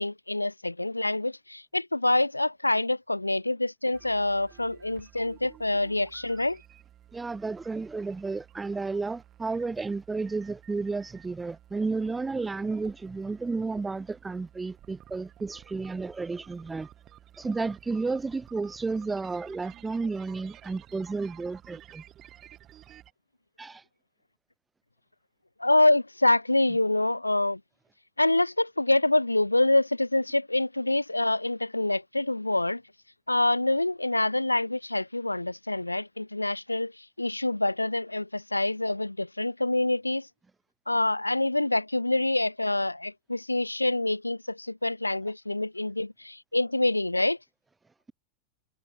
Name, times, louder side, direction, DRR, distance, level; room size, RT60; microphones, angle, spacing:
voice 1, 0.0-6.6 25.6-27.6 28.2-32.8 33.3-36.9 37.2-40.3 40.9-47.4, left 2 dB, 85° left, 0.8 m, -26 dB
sound 1, 3.9-23.1, right 12 dB, 30° right, 7.0 m, -53 dB
voice 2, 7.1-16.9 17.4-22.0 23.6-23.8, right 3 dB, 10° right, 2.2 m, -32 dB
figure-of-eight pair, 90°, 0 cm